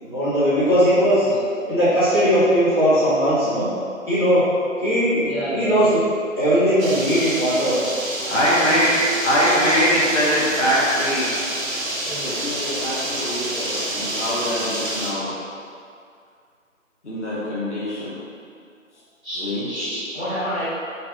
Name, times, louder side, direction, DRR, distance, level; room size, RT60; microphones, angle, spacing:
voice 1, 0.0-1.3 1.7-3.7 4.1-4.4 4.8-5.2 5.5-6.0 6.4-7.8, equal, 20° left, -18 dB, 0.9 m, -18 dB
voice 2, 1.2-1.7 5.2-5.9 12.1-12.4 19.2-19.4 19.7-20.6, equal, 10° right, -25 dB, 1.2 m, -30 dB
sound 1, 6.8-15.1, right 1 dB, 75° right, 0.8 m, -28 dB
voice 3, 8.3-9.0 9.2-11.3 12.3-15.3 17.0-18.1 19.4-19.7, equal, 60° left, -8 dB, 0.8 m, -22 dB
3.2 x 2.5 x 2.5 m, 2.3 s
figure-of-eight pair, 160°, 41 cm